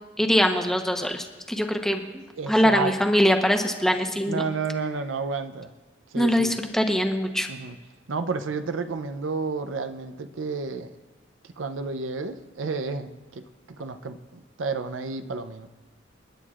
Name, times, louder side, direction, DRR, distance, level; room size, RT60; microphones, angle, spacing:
voice 1, 0.2-2.0 2.5-4.4 6.1-7.5, equal, ahead, 0.9 m, -22 dB
voice 2, 2.4-2.9 4.3-5.7 6.1-6.5 7.5-7.8 8.1-10.9 11.6-13.4 13.8-15.7, right 4 dB, 75° right, 0.6 m, -31 dB
28.5 x 9.9 x 2.5 m
head